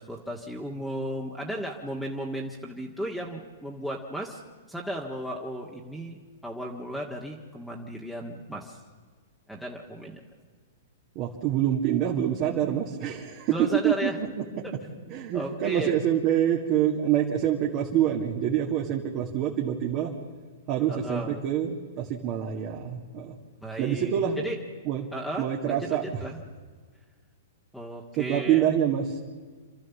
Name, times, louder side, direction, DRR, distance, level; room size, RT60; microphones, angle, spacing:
voice 1, 0.0-4.4 4.7-8.8 9.5-10.2 13.5-14.2 14.6-14.7 15.3-16.0 20.9-21.4 23.6-24.6 25.1-26.4 27.7-28.7, equal, ahead, -3 dB, 1.8 m, -35 dB
voice 2, 11.2-13.5 13.8-14.3 15.1-20.1 20.7-23.4 23.8-24.4 24.9-25.1 25.4-26.3 28.2-29.2, right 10 dB, 40° right, -1 dB, 2.1 m, -26 dB
28.0 x 13.0 x 7.1 m, 1.5 s
hypercardioid pair, 115°, 0 cm